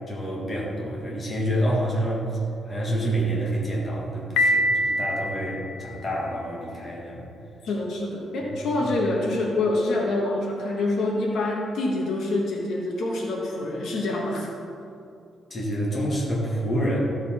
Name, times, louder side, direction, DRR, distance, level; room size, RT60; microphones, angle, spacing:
voice 1, 0.1-2.3 2.7-7.2 8.8-8.9 15.5-17.0, right 1 dB, 25° left, -4 dB, 1.7 m, -27 dB
Piano, 4.4-6.3, equal, 80° left, 0.8 m, -25 dB
voice 2, 7.6-14.5, left 2 dB, 60° left, -2 dB, 1.5 m, -26 dB
14.0 x 6.7 x 4.4 m, 2.6 s
cardioid pair, 175°, 0 cm